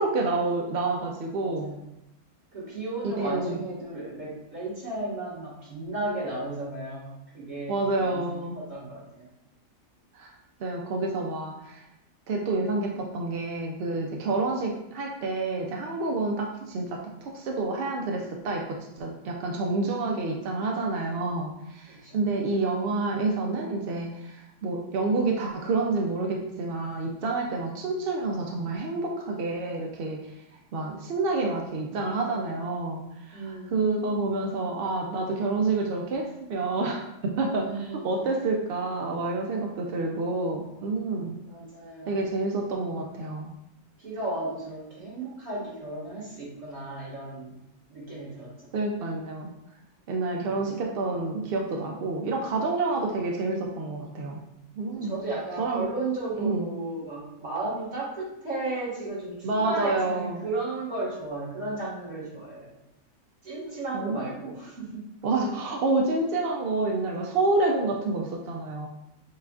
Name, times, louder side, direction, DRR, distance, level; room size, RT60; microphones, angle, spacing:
voice 1, 0.0-1.8 3.0-3.6 7.7-8.6 10.1-10.3 10.6-11.9 12.3-30.3 30.7-41.3 42.1-43.5 48.7-49.5 50.1-54.4 54.8-55.1 55.6-55.8 56.4-56.7 59.4-60.4 63.9-64.5 65.2-68.9, right 3 dB, 70° right, 0 dB, 0.5 m, -28 dB
voice 2, 1.4-1.8 2.5-7.7 8.0-9.3 21.9-22.2 33.3-33.8 37.6-38.4 41.4-42.2 44.0-47.5 47.9-48.5 50.3-50.5 54.9-62.7 63.4-65.0 65.5-65.6, right 2 dB, 35° right, -7 dB, 1.5 m, -34 dB
7.2 x 2.4 x 2.3 m, 0.85 s
omnidirectional pair, 1.5 m